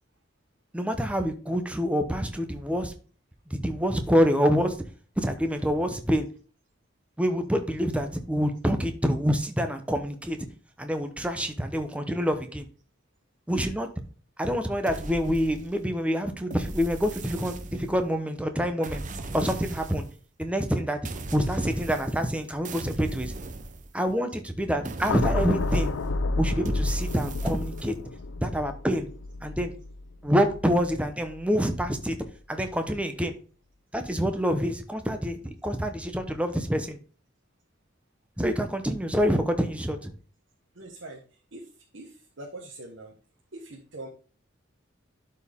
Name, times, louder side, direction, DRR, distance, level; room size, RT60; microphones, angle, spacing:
voice 1, 0.7-2.9 3.5-4.7 5.2-6.3 7.2-10.4 10.8-12.7 13.5-13.9 14.4-19.0 19.3-20.1 20.4-21.0 21.3-23.3 23.9-25.9 26.4-27.9 28.4-29.1 29.4-29.7 30.2-32.2 32.5-33.3 33.9-37.0 38.4-40.1, equal, 5° right, 7 dB, 0.8 m, -26 dB
sound 1, 14.9-16.0 16.5-18.1 18.8-20.2 21.0-22.4 22.6-24.2 24.8-26.2 26.6-27.9, right 2 dB, 40° right, 0.7 m, -38 dB
sound 2, 25.1-31.4 31.7-32.0, left 2 dB, 90° left, 0.6 m, -30 dB
voice 2, 40.7-41.2 41.5-41.7 41.9-43.1 43.5-44.1, right 2 dB, 70° right, -1 dB, 1.3 m, -42 dB
11.5 x 4.4 x 3.6 m, 0.39 s
head